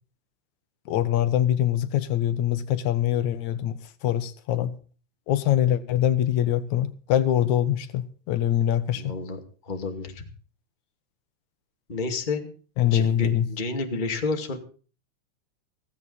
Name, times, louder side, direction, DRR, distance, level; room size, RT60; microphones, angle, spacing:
voice 1, 0.9-4.8 5.3-9.0 12.8-13.5, left 11 dB, 70° left, 2.5 m, -24 dB
voice 2, 9.0-10.2 11.9-12.5 12.8-14.6, left 3 dB, 15° left, 2.0 m, -30 dB
17.0 x 16.0 x 4.1 m
omnidirectional pair, 3.5 m